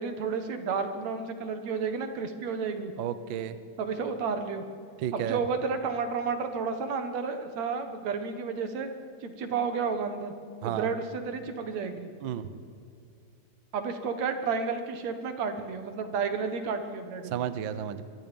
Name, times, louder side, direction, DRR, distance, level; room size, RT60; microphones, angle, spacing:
voice 1, 0.0-2.9 3.8-4.6 5.1-8.9 9.2-10.3 10.6-12.1 13.7-17.5, right 5 dB, 65° right, 7 dB, 2.6 m, -31 dB
voice 2, 3.0-3.6 5.0-5.4 10.6-10.9 12.2-12.5 17.2-18.0, right 10 dB, 80° right, 12 dB, 1.0 m, -32 dB
24.5 x 23.5 x 5.4 m, 2.4 s
omnidirectional pair, 3.6 m